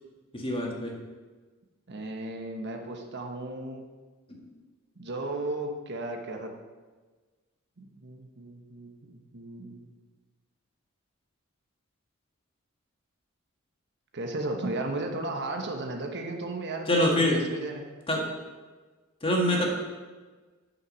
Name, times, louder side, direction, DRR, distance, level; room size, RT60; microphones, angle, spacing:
voice 1, 0.3-1.0 4.3-4.4 16.9-17.4 18.1-18.2 19.2-19.7, left 1 dB, 25° left, -1 dB, 1.8 m, -25 dB
voice 2, 1.9-3.8 5.0-6.5 7.8-9.9 14.1-17.8, right 2 dB, 55° right, 3 dB, 1.2 m, -35 dB
8.9 x 6.2 x 6.3 m, 1.3 s
head